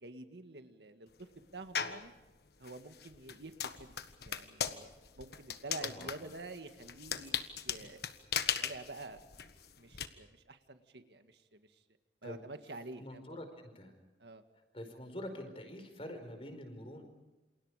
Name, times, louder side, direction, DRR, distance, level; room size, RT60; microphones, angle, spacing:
voice 1, 0.0-2.1 2.6-3.9 4.2-4.9 5.2-8.0 8.6-9.2 9.8-11.8 12.2-13.4 14.2-14.4, right 2 dB, 70° right, 8 dB, 1.9 m, -48 dB
sound 1, 1.7-2.1 2.6-10.1, left 8 dB, 60° left, 1.5 m, -38 dB
voice 2, 5.8-6.1 12.2-12.4 13.0-13.5 13.7-13.9 14.7-17.0, left 1 dB, 30° left, 7 dB, 4.9 m, -45 dB
28.5 x 28.0 x 5.0 m, 1.0 s
head